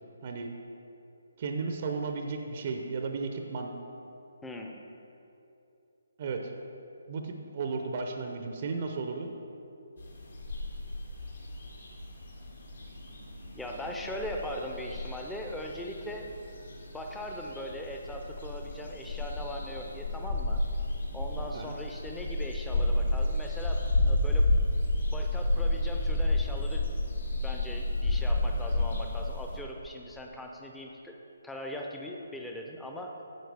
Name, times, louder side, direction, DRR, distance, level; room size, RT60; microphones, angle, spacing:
voice 1, 1.4-3.7 6.2-6.5 7.1-9.3 21.5-21.8, right 4 dB, 40° right, 4 dB, 0.6 m, -34 dB
voice 2, 4.4-4.8 13.5-16.3 16.9-20.6 21.1-24.5 25.1-26.9 27.4-31.2 31.4-33.1, equal, 5° left, 1 dB, 0.6 m, -40 dB
sound 1, 10.0-29.6, left 2 dB, 60° left, 1.6 m, -31 dB
9.4 x 7.6 x 3.4 m, 2.8 s
figure-of-eight pair, 140°, 0 cm